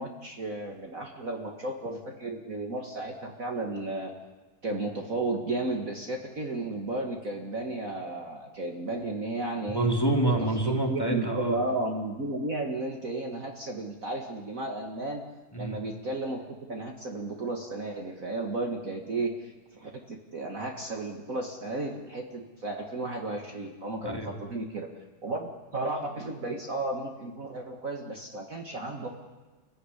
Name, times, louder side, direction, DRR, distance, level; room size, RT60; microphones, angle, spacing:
voice 1, 0.0-4.1 4.6-9.9 10.9-15.2 15.6-24.9 25.2-29.1, right 2 dB, 40° right, 2 dB, 2.1 m, -33 dB
voice 2, 9.7-11.6 15.5-15.8 24.0-24.3, right 1 dB, 10° left, 0 dB, 3.2 m, -27 dB
27.5 x 15.5 x 10.0 m, 1.3 s
omnidirectional pair, 2.3 m